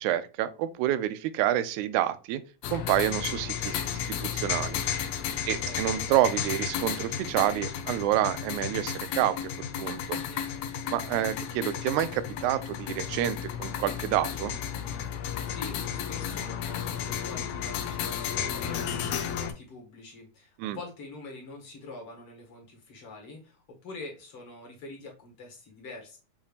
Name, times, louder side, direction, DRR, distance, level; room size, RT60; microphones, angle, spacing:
voice 1, 0.0-2.4 2.7-4.8 5.5-9.5 9.8-10.2 10.9-14.5 20.6-20.8, right 12 dB, 85° right, 1.9 m, -28 dB
sound 1, 2.6-19.5, left 8 dB, 75° left, 1.8 m, -33 dB
voice 2, 10.1-10.4 15.4-26.2, left 3 dB, 50° left, 2.2 m, -45 dB
7.0 x 2.8 x 2.4 m
omnidirectional pair, 3.4 m